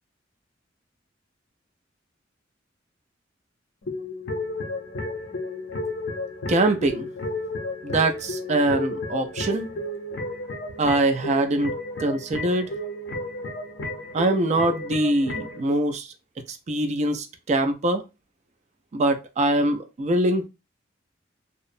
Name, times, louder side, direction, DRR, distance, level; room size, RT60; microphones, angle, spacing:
sound 1, 3.8-15.6, left 1 dB, 65° left, 0.6 m, -32 dB
voice 1, 6.5-7.1 7.8-9.7 10.8-11.7 12.0-12.7 14.1-16.1 16.5-18.0 18.9-20.5, right 1 dB, 40° right, 7 dB, 0.4 m, -23 dB
2.7 x 2.0 x 2.5 m, 0.25 s
head